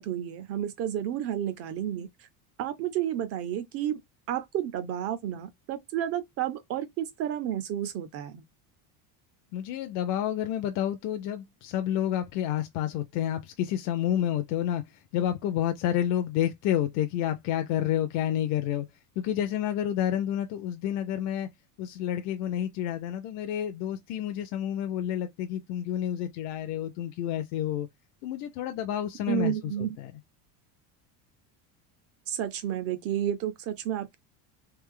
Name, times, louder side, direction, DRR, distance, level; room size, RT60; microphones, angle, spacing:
voice 1, 0.0-2.3 2.6-4.0 4.3-8.4 29.3-30.0 32.3-34.2, right 11 dB, 35° right, 0.4 m, -31 dB
voice 2, 9.5-14.8 15.1-18.9 19.2-21.5 21.8-27.9 28.2-30.1, left 11 dB, 40° left, 0.4 m, -29 dB
3.4 x 3.1 x 3.6 m
cardioid pair, 170°, 46 cm